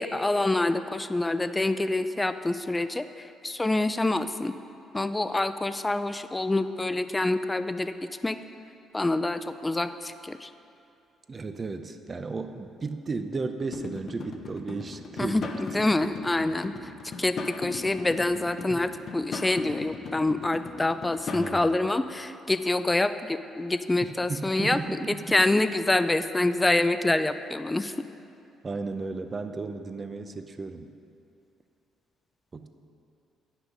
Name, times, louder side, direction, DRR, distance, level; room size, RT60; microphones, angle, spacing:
voice 1, 0.0-3.1 3.4-4.5 4.9-7.9 8.2-8.4 8.9-10.5 15.2-16.7 17.2-24.8 25.1-28.1, left 2 dB, 15° left, 11 dB, 0.4 m, -26 dB
voice 2, 11.3-15.8 18.7-18.8 21.3-21.7 24.0-25.4 28.6-30.9 32.5-32.7, right 3 dB, 30° right, 8 dB, 0.6 m, -34 dB
sound 1, 13.7-21.5, left 4 dB, 50° left, 0.7 m, -39 dB
9.8 x 6.1 x 5.3 m, 2.7 s
cardioid pair, 95°, 0 cm